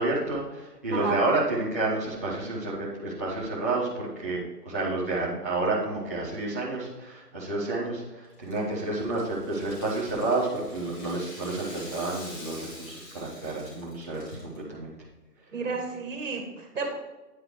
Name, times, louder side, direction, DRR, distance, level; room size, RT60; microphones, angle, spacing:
voice 1, 0.0-14.9, right 2 dB, 10° right, -10 dB, 0.9 m, -30 dB
Rattle (instrument), 8.3-14.6, left 1 dB, 30° left, 2.8 m, -46 dB
voice 2, 15.5-16.9, right 4 dB, 50° right, 2 dB, 2.4 m, -31 dB
9.4 x 4.9 x 4.8 m, 1.1 s
hypercardioid pair, 170°, 48 cm